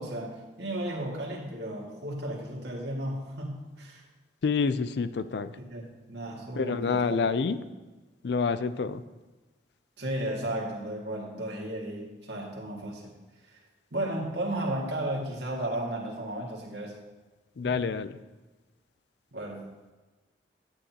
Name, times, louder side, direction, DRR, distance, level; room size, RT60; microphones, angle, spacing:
voice 1, 0.0-4.0 5.7-5.8 6.1-7.6 10.0-13.1 13.5-13.6 13.9-17.0 19.3-19.7, right 1 dB, 70° right, -3 dB, 2.1 m, -34 dB
voice 2, 4.4-5.5 6.6-7.6 8.2-9.0 17.6-18.1, left 5 dB, 65° left, 13 dB, 0.4 m, -27 dB
11.0 x 8.9 x 2.9 m, 1.2 s
head